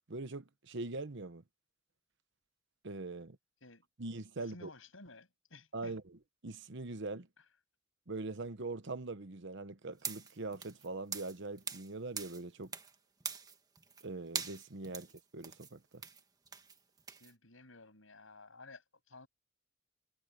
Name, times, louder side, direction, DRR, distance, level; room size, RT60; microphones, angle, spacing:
voice 1, 0.1-1.4 2.8-3.4 4.0-4.7 5.7-6.0 6.4-7.3 8.1-12.7 14.0-15.1 15.3-16.0, right 3 dB, 60° right, 1.1 m, -42 dB
voice 2, 4.4-6.0 17.2-19.3, left 2 dB, 75° left, 7.4 m, -55 dB
sound 1, 10.0-11.9 12.2-12.9 13.2-14.0 14.3-17.3, right 5 dB, 20° right, 1.5 m, -43 dB
head